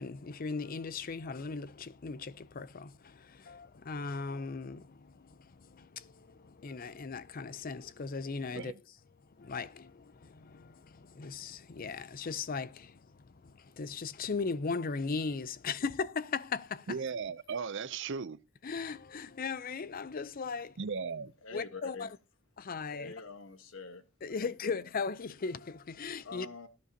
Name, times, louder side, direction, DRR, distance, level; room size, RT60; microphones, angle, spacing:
voice 1, 0.0-8.7 9.4-17.0 18.6-20.8 21.5-22.1 22.6-23.1 24.2-26.5, left 4 dB, 45° left, 0.5 m, -38 dB
voice 2, 16.9-18.4 20.8-21.3, right 5 dB, 60° right, 0.6 m, -36 dB
voice 3, 21.4-22.1 22.9-24.0 24.3-24.9 26.2-26.7, left 4 dB, 70° left, 1.4 m, -45 dB
17.5 x 10.5 x 2.8 m
head